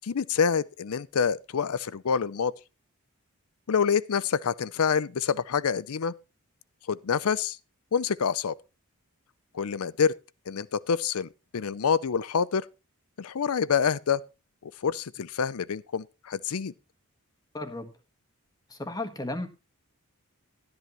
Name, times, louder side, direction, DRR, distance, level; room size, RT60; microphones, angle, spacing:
voice 1, 0.0-2.5 3.7-6.1 6.9-7.6 7.9-8.6 9.5-10.1 10.5-12.7 13.2-14.2 14.6-16.7, left 6 dB, 75° left, 0.5 m, -27 dB
voice 2, 17.5-17.9 18.7-19.5, left 2 dB, 15° left, 1.3 m, -34 dB
12.0 x 11.0 x 3.0 m
head